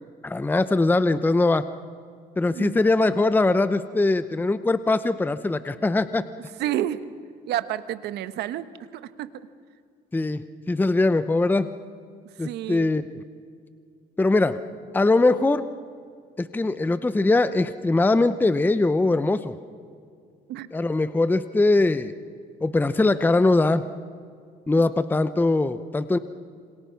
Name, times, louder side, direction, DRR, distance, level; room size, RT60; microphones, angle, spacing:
voice 1, 0.2-1.7 2.4-6.2 10.1-10.4 10.7-11.7 12.4-13.2 14.2-14.6 14.9-15.6 16.4-19.6 20.7-22.1 22.6-23.8 24.7-26.2, left 2 dB, 10° left, 12 dB, 0.8 m, -21 dB
voice 2, 2.5-2.9 6.6-7.0 7.5-8.7 8.9-9.3 12.4-12.9 20.5-20.7 24.7-24.8, right 12 dB, 80° right, 12 dB, 1.2 m, -30 dB
27.5 x 26.5 x 5.8 m, 2.3 s
cardioid pair, 110°, 17 cm